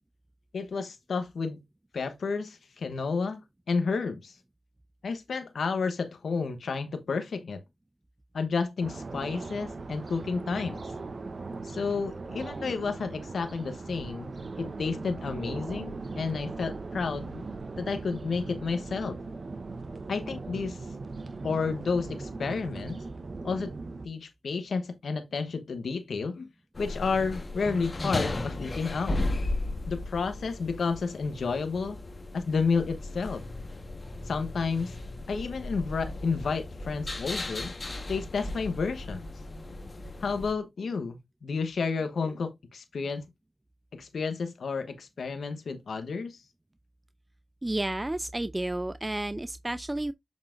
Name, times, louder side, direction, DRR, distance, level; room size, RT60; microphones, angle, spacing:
voice 1, 0.5-1.6 1.9-3.4 3.7-4.4 5.0-7.6 8.3-10.8 11.6-14.3 14.6-17.3 17.8-19.2 20.1-20.9 21.4-23.0 23.4-23.7 24.0-26.5 26.8-29.2 29.9-32.0 32.3-33.4 34.3-34.9 35.3-37.7 38.1-39.3 40.2-43.2 43.9-46.4, left 4 dB, 85° left, 1.0 m, -31 dB
sound 1, 8.8-24.1, right 3 dB, 60° right, 0.9 m, -39 dB
sound 2, 26.7-40.5, left 2 dB, 45° left, 1.3 m, -36 dB
voice 2, 47.6-50.1, right 1 dB, 25° right, 0.4 m, -31 dB
7.4 x 5.5 x 2.5 m
cardioid pair, 45°, 0 cm